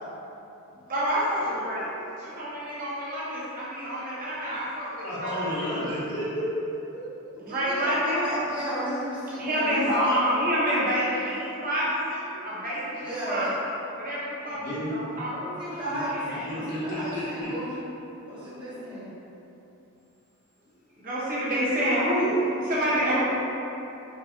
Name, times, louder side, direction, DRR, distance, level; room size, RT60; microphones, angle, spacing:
voice 1, 0.9-1.9 2.2-5.8 7.4-8.2 9.4-13.5 13.9-14.6 14.9-15.3 16.0-16.7 20.9-23.2, equal, 40° right, -8 dB, 0.9 m, -28 dB
voice 2, 5.0-6.5 6.9-7.2 14.5-15.0 15.9-16.0 16.5-17.5, equal, 80° left, -14 dB, 1.4 m, -32 dB
voice 3, 7.4-10.1 13.0-13.5 15.3-17.8 18.3-19.1 22.9-23.2, right 1 dB, 20° right, -12 dB, 1.2 m, -33 dB
4.5 x 2.7 x 2.4 m, 2.9 s
head